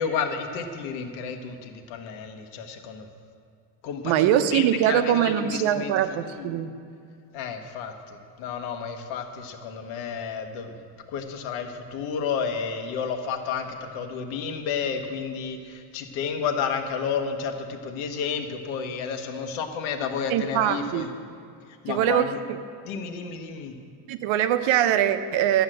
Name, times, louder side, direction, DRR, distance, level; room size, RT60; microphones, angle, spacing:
voice 1, 0.0-3.1 3.8-5.9 6.3-6.5 7.3-10.7 11.1-21.1 21.8-22.4 22.8-23.7, left 6 dB, 90° left, 5 dB, 1.3 m, -31 dB
voice 2, 4.0-6.7 20.3-21.0 21.9-22.6 24.1-25.6, right 10 dB, 80° right, 10 dB, 0.9 m, -23 dB
11.5 x 8.1 x 7.8 m, 2.4 s
cardioid pair, 135°, 46 cm